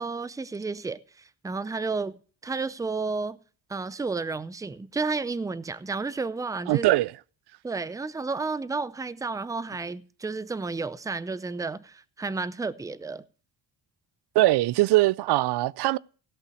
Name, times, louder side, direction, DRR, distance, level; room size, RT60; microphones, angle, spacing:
voice 1, 0.0-2.2 2.4-3.4 3.7-6.9 7.6-13.2, right 4 dB, 10° right, 0.5 m, -32 dB
voice 2, 6.7-7.1 14.4-16.0, right 17 dB, 80° right, 0.5 m, -21 dB
16.5 x 5.6 x 6.3 m
cardioid pair, 115°, 39 cm